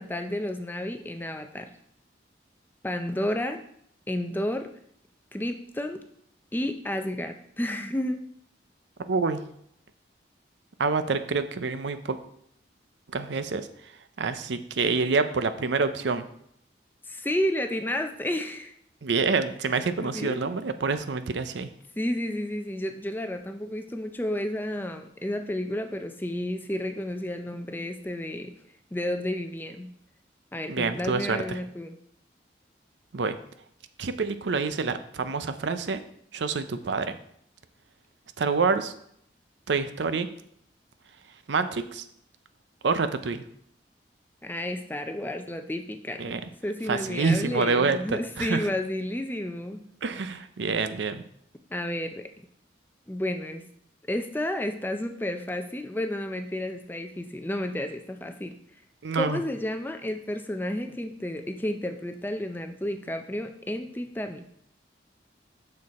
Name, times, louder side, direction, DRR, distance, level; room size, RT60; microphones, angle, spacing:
voice 1, 0.0-1.7 2.8-3.6 4.1-4.7 5.3-6.0 6.5-8.2 17.0-18.7 20.0-20.5 22.0-28.5 28.9-29.9 30.5-32.0 44.4-49.8 51.7-52.3 53.1-53.6 54.1-58.5 59.1-64.5, left 1 dB, 10° left, 6 dB, 0.5 m, -31 dB
voice 2, 9.1-9.4 10.8-12.2 13.1-16.3 19.0-21.7 30.7-31.6 33.1-33.4 34.0-36.0 36.3-37.2 38.4-38.9 39.7-40.3 41.5-42.1 42.8-43.4 46.2-46.4 46.9-48.7 50.0-51.2 59.0-59.4, right 4 dB, 80° right, 10 dB, 0.6 m, -27 dB
6.6 x 6.4 x 4.2 m, 0.70 s
head